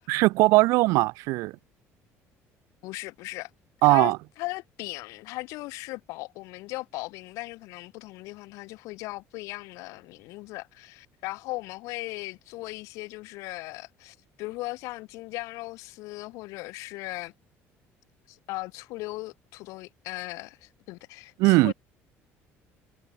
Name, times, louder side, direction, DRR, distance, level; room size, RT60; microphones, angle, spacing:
voice 1, 0.1-1.5 3.8-4.2 21.4-21.7, right 22 dB, 75° right, 0.4 m, -20 dB
voice 2, 2.8-3.5 3.8-17.3 18.3-21.7, left 21 dB, 75° left, 1.1 m, -38 dB
cardioid pair, 150°, 5 cm